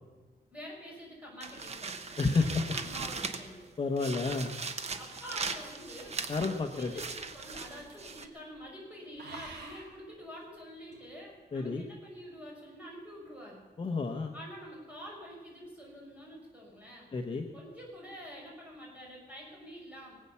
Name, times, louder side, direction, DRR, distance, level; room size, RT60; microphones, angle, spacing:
voice 1, 0.5-3.7 5.0-6.2 6.7-13.6 14.3-17.1 17.5-20.1, equal, 10° right, -3 dB, 5.6 m, -47 dB
sound 1, 1.4-3.6 4.0-8.3, right 4 dB, 40° right, 1.0 m, -39 dB
voice 2, 2.2-2.6 3.8-4.5 6.3-6.9 11.5-11.8 13.8-14.3 17.1-17.5, left 3 dB, 30° left, 3 dB, 0.9 m, -30 dB
sound 2, 3.5-8.3 8.6-8.8 9.2-10.0 10.9-11.1, right 3 dB, 85° right, 3.4 m, -52 dB
22.5 x 8.5 x 6.9 m, 1.3 s
wide cardioid pair, 175°, 17 cm